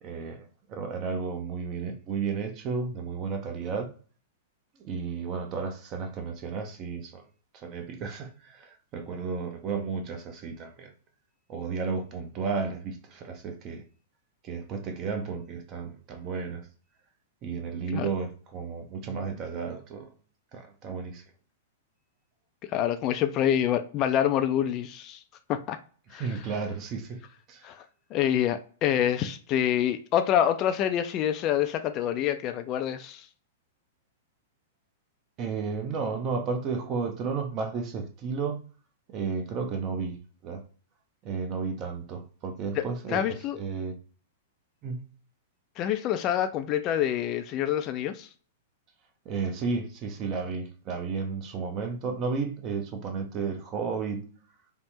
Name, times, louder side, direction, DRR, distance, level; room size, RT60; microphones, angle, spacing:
voice 1, 0.0-3.9 4.8-7.2 7.5-10.9 11.5-13.8 14.4-16.7 17.4-20.1 20.5-21.2 26.1-27.2 27.5-27.7 35.4-38.6 39.1-40.6 41.2-43.9 44.8-45.1 49.2-54.3, right 5 dB, 35° right, 0.6 m, -33 dB
voice 2, 22.7-25.2 25.5-25.8 26.1-26.2 27.6-27.8 28.1-33.2 42.8-43.6 45.8-48.3, left 10 dB, 40° left, 0.3 m, -26 dB
3.3 x 2.0 x 2.8 m
hypercardioid pair, 110°, 0 cm